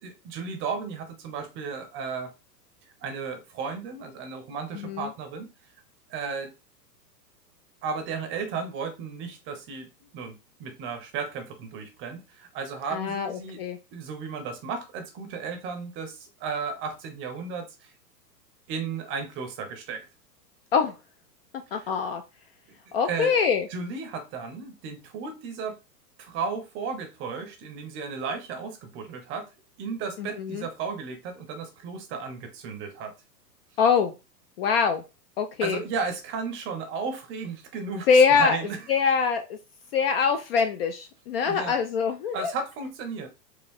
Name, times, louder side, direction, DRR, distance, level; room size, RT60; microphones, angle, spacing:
voice 1, 0.0-2.3 3.0-5.5 6.1-6.5 7.8-9.9 10.1-13.6 13.9-17.9 18.7-20.0 21.7-21.9 22.9-23.4 23.7-25.8 26.2-29.4 29.8-33.1 35.6-38.8 41.4-41.7 42.3-43.3, right 5 dB, 25° right, 7 dB, 0.7 m, -34 dB
voice 2, 4.7-5.1 12.9-13.8 20.7-20.9 21.7-22.2 22.9-23.7 30.2-30.7 33.8-34.1 34.6-35.0 35.4-35.8 38.1-38.6 38.9-39.6 39.9-42.5, left 6 dB, 40° left, 7 dB, 0.4 m, -23 dB
4.5 x 2.4 x 3.4 m, 0.28 s
hypercardioid pair, 125°, 49 cm